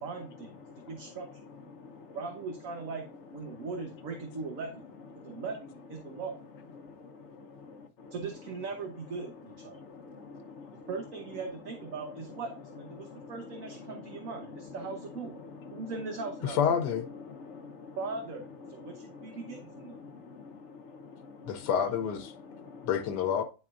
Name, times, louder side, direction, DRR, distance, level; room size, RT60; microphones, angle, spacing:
voice 1, 0.0-0.5 0.9-1.3 2.1-3.1 3.3-4.9 5.2-6.4 8.1-9.8 10.9-15.3 15.7-16.8 18.0-20.0, right 4 dB, 60° right, 1.3 m, -39 dB
voice 2, 0.7-1.2 1.7-2.2 3.5-3.7 5.2-5.4 6.0-6.2 6.8-8.1 9.7-10.9 13.0-14.9 15.4-15.9 17.2-18.0 18.7-21.6 22.5-22.9, left 4 dB, 50° left, 1.1 m, -48 dB
voice 3, 16.4-17.1 21.5-22.3 22.8-23.4, left 8 dB, 90° left, 1.3 m, -28 dB
10.0 x 4.2 x 2.4 m
omnidirectional pair, 1.7 m